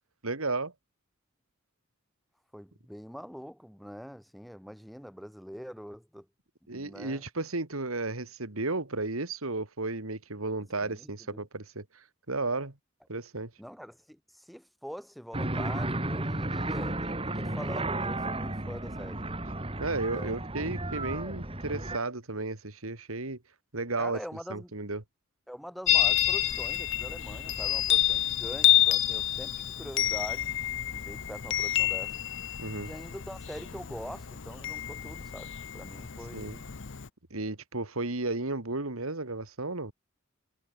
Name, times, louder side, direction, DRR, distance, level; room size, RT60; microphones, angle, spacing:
voice 1, 0.2-0.7 6.7-11.8 12.3-12.7 13.1-13.5 19.8-23.4 23.7-24.2 24.5-25.0 32.6-32.9 36.3-36.6 37.3-39.9, right 3 dB, 80° right, 2.6 m, -33 dB
voice 2, 2.5-6.3 6.7-7.2 10.8-11.4 13.6-19.3 20.1-20.4 24.0-24.7 25.5-30.6 30.9-32.2 32.8-36.8, equal, ahead, 5.5 m, -44 dB
sound 1, 15.3-22.0, right 2 dB, 25° right, 2.8 m, -33 dB
Chime, 25.9-37.1, left 13 dB, 60° left, 0.8 m, -28 dB
head